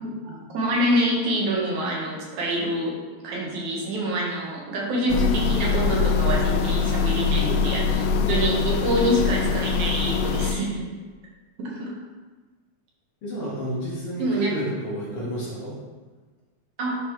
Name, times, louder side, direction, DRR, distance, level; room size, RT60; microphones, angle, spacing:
voice 1, 0.0-3.0 3.2-10.9 11.6-11.9 14.2-14.5 15.2-15.3 16.8-17.0, right 1 dB, 70° right, -3 dB, 2.5 m, -26 dB
sound 1, 5.1-10.6, left 5 dB, 90° left, 2.2 m, -23 dB
voice 2, 13.2-15.8, right 1 dB, 55° left, -6 dB, 2.0 m, -30 dB
11.0 x 4.4 x 3.1 m, 1.3 s
omnidirectional pair, 3.6 m